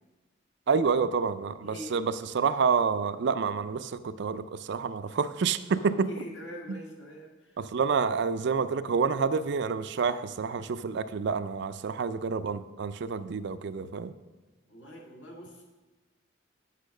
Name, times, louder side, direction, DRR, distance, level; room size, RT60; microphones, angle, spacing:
voice 1, 0.7-6.1 6.7-6.8 7.6-14.1, right 5 dB, 65° right, 13 dB, 0.4 m, -28 dB
voice 2, 1.6-2.0 5.1-5.2 5.7-7.6 14.7-15.7, equal, 65° left, 0 dB, 2.0 m, -44 dB
8.4 x 5.6 x 6.4 m, 1.2 s
head